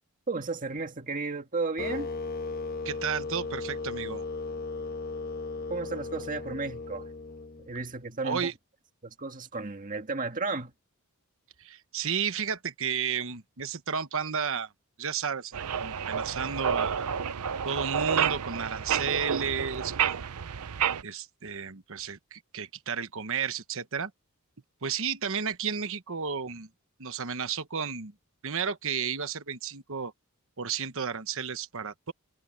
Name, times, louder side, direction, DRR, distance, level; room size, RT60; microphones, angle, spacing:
voice 1, 0.3-2.1 5.7-7.1 7.7-8.5 9.0-10.7, right 3 dB, 35° right, 1.8 m, -33 dB
sound 1, 1.8-7.9, left 3 dB, 45° left, 1.3 m, -36 dB
voice 2, 2.8-4.2 8.2-8.5 11.6-14.7 15.0-17.1 17.6-20.2 21.0-24.1 24.8-26.7 27.0-28.1 28.4-30.1 30.6-32.1, right 6 dB, 60° right, 1.1 m, -32 dB
sound 2, 15.5-21.0, right 7 dB, 85° right, 0.7 m, -30 dB
head